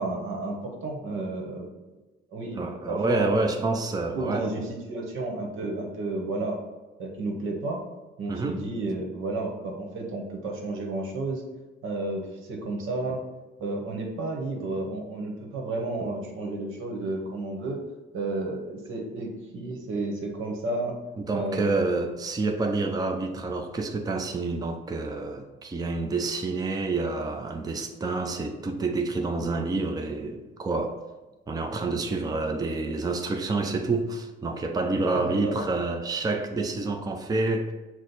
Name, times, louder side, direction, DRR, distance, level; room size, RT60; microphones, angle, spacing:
voice 1, 0.0-1.7 2.3-3.8 4.1-6.6 7.0-7.8 8.2-11.4 11.8-13.2 13.6-17.8 18.1-20.9 21.3-21.7 35.1-35.5, right 2 dB, 80° right, 1.0 m, -32 dB
voice 2, 2.5-4.5 8.3-8.6 21.2-31.0 31.5-37.7, right 3 dB, 20° right, 0.5 m, -28 dB
6.2 x 2.1 x 4.0 m
cardioid pair, 90°, 20 cm